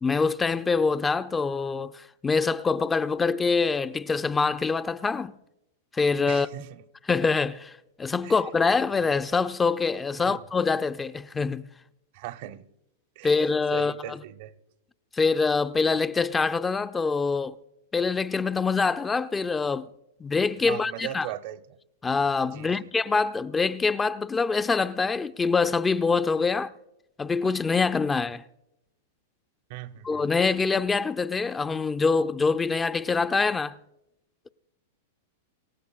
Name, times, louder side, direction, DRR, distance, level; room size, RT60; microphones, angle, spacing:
voice 1, 0.0-5.3 5.9-6.5 7.1-7.7 8.0-11.7 13.2-14.2 15.1-17.6 17.9-19.9 20.2-21.3 22.0-26.7 27.2-28.4 30.0-33.8, left 4 dB, 15° left, 0.5 m, -25 dB
voice 2, 6.3-6.8 8.2-8.4 9.0-9.1 10.2-10.4 12.1-12.7 13.2-13.5 13.7-14.5 20.6-21.8 22.5-22.9 29.7-30.3, right 12 dB, 55° right, 0.8 m, -39 dB
27.0 x 15.5 x 2.4 m
hypercardioid pair, 115°, 0 cm